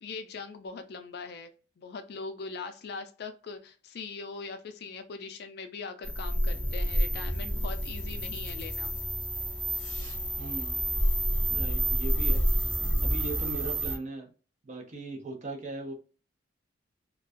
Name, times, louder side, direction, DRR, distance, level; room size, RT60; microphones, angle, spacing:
voice 1, 0.0-8.9, left 4 dB, 60° left, 8 dB, 0.4 m, -41 dB
sound 1, 6.0-14.0, right 1 dB, 25° right, 1.0 m, -29 dB
voice 2, 10.4-10.9 11.5-12.4 13.0-14.3 14.6-15.9, right 2 dB, 40° right, 2 dB, 0.6 m, -39 dB
2.2 x 2.2 x 2.4 m, 0.37 s
head